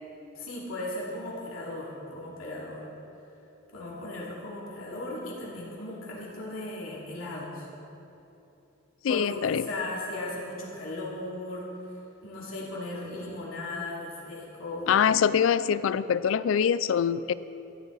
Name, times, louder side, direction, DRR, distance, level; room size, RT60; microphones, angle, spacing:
voice 1, 0.3-2.8 3.7-7.7 9.1-11.7 12.2-15.0, left 2 dB, 85° left, -5 dB, 2.8 m, -37 dB
voice 2, 9.0-9.7 14.9-17.3, left 7 dB, 70° left, 16 dB, 0.3 m, -24 dB
14.5 x 9.9 x 4.1 m, 2.9 s
head